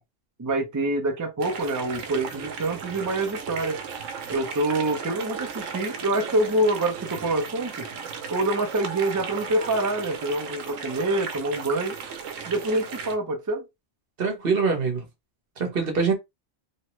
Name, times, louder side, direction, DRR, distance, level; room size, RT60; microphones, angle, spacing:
voice 1, 0.4-3.8 4.3-7.9 8.3-12.0 12.5-13.7, right 2 dB, 30° right, 0.3 m, -26 dB
sound 1, 1.4-13.2, right 6 dB, 90° right, 1.0 m, -36 dB
voice 2, 14.2-15.0 15.6-16.1, right 5 dB, 50° right, 1.1 m, -24 dB
3.1 x 2.1 x 3.0 m
omnidirectional pair, 1.3 m